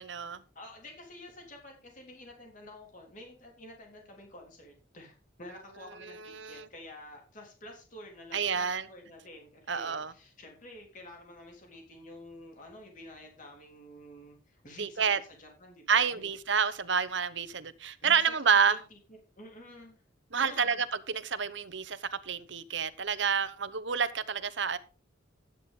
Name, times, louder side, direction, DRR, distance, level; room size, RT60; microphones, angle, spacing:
voice 1, 0.0-0.4 6.3-6.7 8.3-8.8 9.7-10.1 14.8-15.2 15.9-18.8 20.3-24.8, right 6 dB, 70° right, 1.0 m, -29 dB
voice 2, 0.6-16.3 18.0-18.3 18.7-19.0 19.4-20.0 20.4-20.8, left 1 dB, 45° left, 3.6 m, -49 dB
13.0 x 9.4 x 3.8 m
head